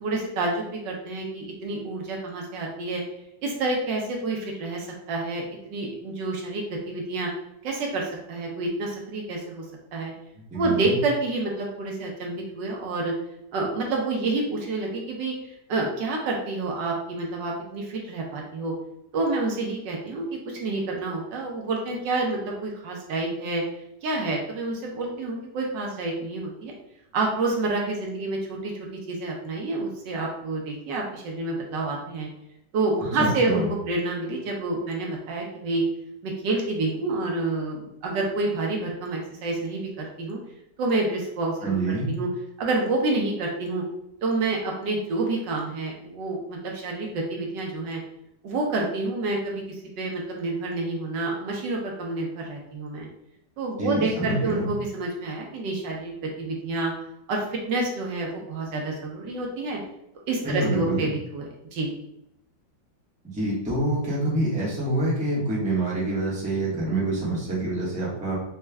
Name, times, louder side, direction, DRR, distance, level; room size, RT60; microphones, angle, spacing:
voice 1, 0.0-3.0 3.4-7.3 7.6-9.6 9.9-10.1 10.5-13.1 13.5-15.3 15.7-18.7 19.1-23.6 24.0-26.7 27.1-32.3 32.7-35.8 36.2-40.4 40.8-42.3 42.6-43.8 44.2-48.0 48.4-53.1 53.6-56.9 57.3-59.8 60.3-61.9, right 2 dB, 75° right, -1 dB, 1.4 m, -28 dB
voice 2, 10.5-10.9 33.2-33.7 41.6-42.1 53.8-54.7 60.4-61.1 63.3-68.4, right 2 dB, 5° right, -6 dB, 0.8 m, -26 dB
4.2 x 2.3 x 3.4 m, 0.81 s
omnidirectional pair, 2.0 m